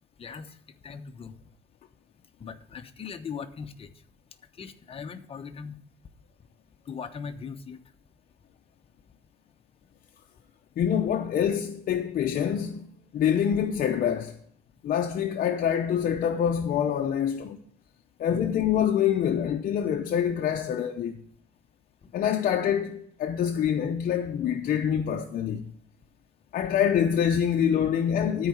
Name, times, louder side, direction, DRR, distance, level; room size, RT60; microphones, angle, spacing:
voice 1, 0.2-0.5 0.8-1.3 2.4-3.9 4.6-5.8 6.9-7.8 22.0-22.1, left 6 dB, 35° left, 1.0 m, -39 dB
voice 2, 10.8-12.8 13.1-14.3 14.8-17.6 18.2-21.1 22.1-25.7 26.5-28.5, left 9 dB, 55° left, 0.8 m, -25 dB
12.5 x 4.8 x 7.2 m
cardioid pair, 110°, 17 cm